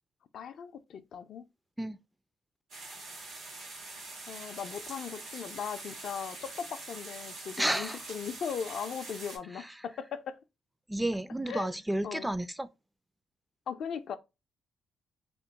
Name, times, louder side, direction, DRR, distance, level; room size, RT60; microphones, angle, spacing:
voice 1, 0.3-1.4 4.3-10.4 11.5-11.7 12.0-12.3 13.7-14.2, left 7 dB, 70° left, 0.3 m, -38 dB
sound 1, 2.7-9.4, right 2 dB, 85° right, 1.4 m, -44 dB
voice 2, 7.6-8.0 9.5-9.7 10.9-12.7, right 1 dB, 10° right, 0.3 m, -31 dB
2.9 x 2.5 x 3.3 m
supercardioid pair, 55°, 0 cm